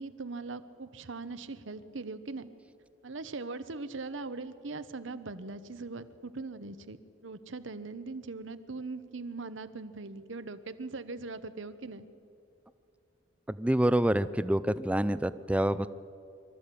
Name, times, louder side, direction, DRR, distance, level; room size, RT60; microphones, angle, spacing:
voice 1, 0.0-2.5 3.0-12.1, right 3 dB, 75° right, 12 dB, 1.0 m, -40 dB
voice 2, 13.5-15.9, right 1 dB, 5° right, 14 dB, 0.5 m, -27 dB
24.5 x 13.5 x 8.5 m, 2.5 s
head